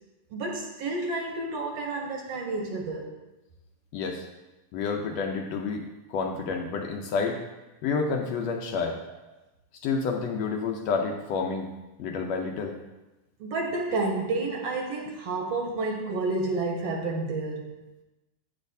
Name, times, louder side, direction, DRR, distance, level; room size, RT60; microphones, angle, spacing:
voice 1, 0.3-3.1 13.4-17.9, right 3 dB, 70° right, 1 dB, 1.7 m, -30 dB
voice 2, 3.9-4.2 4.7-5.8 6.1-7.4 7.8-9.0 9.8-11.7 12.0-12.8, left 5 dB, 75° left, 2 dB, 1.7 m, -29 dB
8.6 x 8.5 x 2.7 m, 1.0 s
omnidirectional pair, 3.3 m